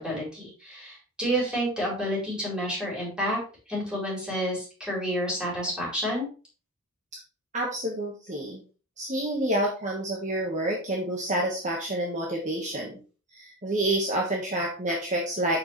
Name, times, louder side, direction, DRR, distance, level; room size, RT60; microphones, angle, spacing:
voice 1, 0.0-3.4 3.7-6.3, equal, 5° right, -5 dB, 4.6 m, -29 dB
voice 2, 7.5-8.6 9.0-13.0 13.3-15.6, right 1 dB, 35° right, -1 dB, 1.6 m, -28 dB
7.9 x 6.6 x 3.3 m, 0.35 s
head